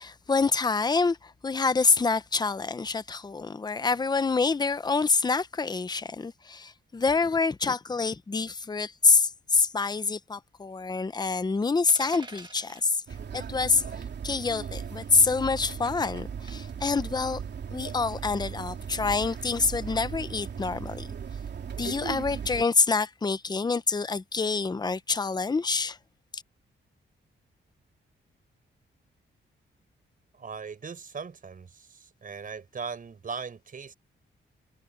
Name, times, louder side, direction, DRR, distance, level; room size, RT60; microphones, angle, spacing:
voice 1, 0.0-13.0 13.3-13.8 14.2-17.4 17.7-21.1 21.8-26.0 26.3-26.4, left 4 dB, 20° left, 0.7 m, -26 dB
sound 1, 11.9-12.9 14.5-14.7 16.5-16.8, right 3 dB, 25° right, 1.6 m, -45 dB
sound 2, 13.1-22.6, right 7 dB, 60° right, 2.9 m, -37 dB
voice 2, 30.3-33.9, right 5 dB, 45° right, 5.8 m, -39 dB
wide cardioid pair, 125°, 20 cm